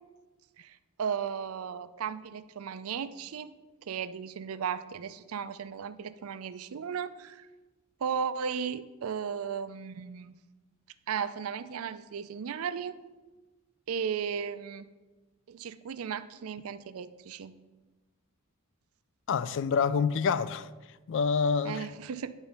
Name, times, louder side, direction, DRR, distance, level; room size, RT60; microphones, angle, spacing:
voice 1, 0.6-3.5 3.9-7.5 8.0-10.3 11.1-13.0 13.9-14.9 15.5-17.5 21.6-22.3, right 7 dB, 80° right, 0.4 m, -35 dB
voice 2, 19.3-20.7 21.1-21.9, left 5 dB, 60° left, 0.3 m, -27 dB
10.5 x 4.0 x 5.4 m
head